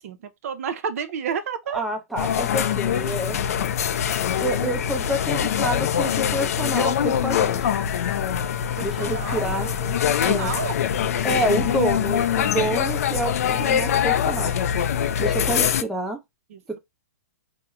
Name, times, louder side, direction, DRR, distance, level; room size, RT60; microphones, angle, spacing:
voice 1, 0.0-1.8 8.8-10.8 16.5-16.8, right 7 dB, 55° right, 0.5 m, -31 dB
voice 2, 1.7-3.4 4.4-7.7 8.8-9.7 10.2-10.5 11.2-14.6 15.2-16.2, right 1 dB, ahead, 0.6 m, -28 dB
sound 1, 2.2-15.8, left 9 dB, 60° left, 0.4 m, -23 dB
4.5 x 2.1 x 2.2 m
hypercardioid pair, 120°, 9 cm